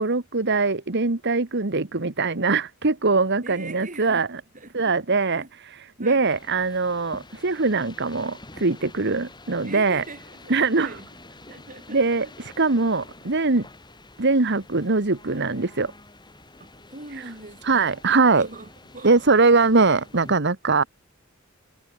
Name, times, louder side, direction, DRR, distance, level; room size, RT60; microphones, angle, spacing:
voice 1, 0.0-4.4 4.7-10.0 10.5-11.0 11.9-13.7 14.2-15.9 17.2-17.3 17.6-18.5 19.0-20.8, right 3 dB, 55° right, 1.5 m, -22 dB
voice 2, 3.4-4.3 4.5-5.0 5.3-5.5 6.0-6.3 9.6-11.1 11.5-12.3 16.6-18.0 18.3-19.3, right 2 dB, 40° right, 5.4 m, -42 dB
sound 1, 6.2-20.3, left 2 dB, 20° left, 5.1 m, -48 dB
head